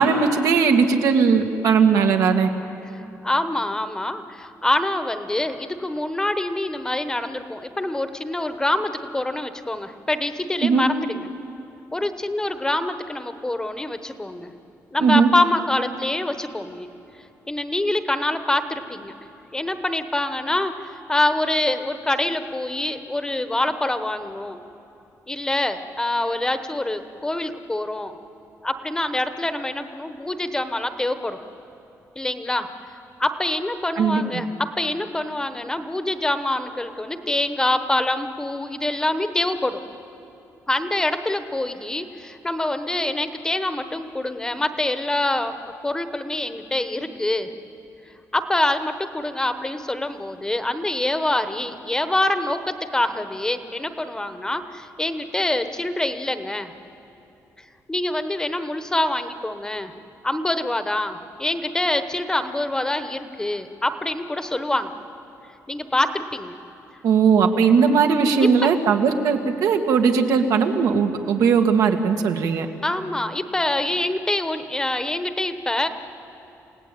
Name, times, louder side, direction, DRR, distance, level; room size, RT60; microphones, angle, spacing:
voice 1, 0.0-2.5 10.6-10.8 15.0-15.3 34.0-34.2 67.0-72.7, right 6 dB, 80° right, 5 dB, 1.9 m, -18 dB
voice 2, 3.2-11.3 11.9-14.5 14.9-16.9 17.5-19.1 19.5-24.6 25.3-28.1 28.6-31.4 32.2-32.7 33.2-39.8 40.7-47.5 48.3-56.7 57.9-59.9 60.2-64.9 65.7-66.6 68.6-68.7 72.8-75.9, left 1 dB, 10° left, 9 dB, 1.0 m, -25 dB
28.5 x 17.5 x 9.1 m, 2.8 s
cardioid pair, 145°, 6 cm